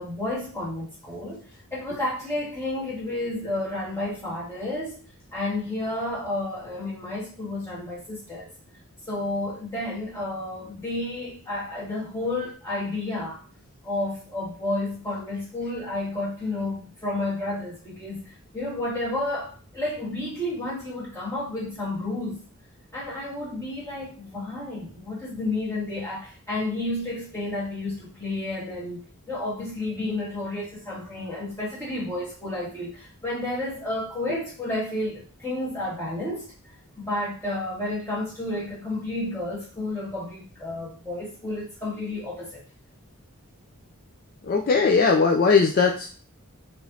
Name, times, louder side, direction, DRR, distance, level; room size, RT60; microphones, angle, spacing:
voice 1, 0.0-1.4 1.7-5.0 5.3-8.5 9.1-13.4 13.8-22.4 22.9-29.0 29.3-36.5 37.0-42.6, left 2 dB, 10° left, -7 dB, 1.7 m, -31 dB
voice 2, 44.4-46.1, left 5 dB, 40° left, 2 dB, 0.4 m, -19 dB
4.8 x 3.0 x 2.7 m, 0.41 s
head